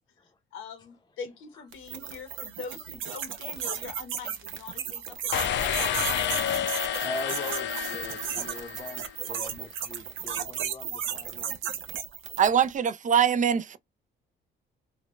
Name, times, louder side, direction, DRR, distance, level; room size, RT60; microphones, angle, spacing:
voice 1, 0.5-5.8, left 5 dB, 85° left, 1.1 m, -42 dB
sound 1, 1.7-12.7, right 9 dB, 80° right, 0.8 m, -34 dB
sound 2, 5.3-9.1, left 10 dB, 65° left, 0.5 m, -30 dB
voice 2, 7.0-11.6, left 2 dB, 20° left, 0.7 m, -41 dB
voice 3, 12.4-13.8, right 8 dB, 40° right, 0.5 m, -23 dB
3.6 x 2.2 x 2.9 m
cardioid pair, 90°, 20 cm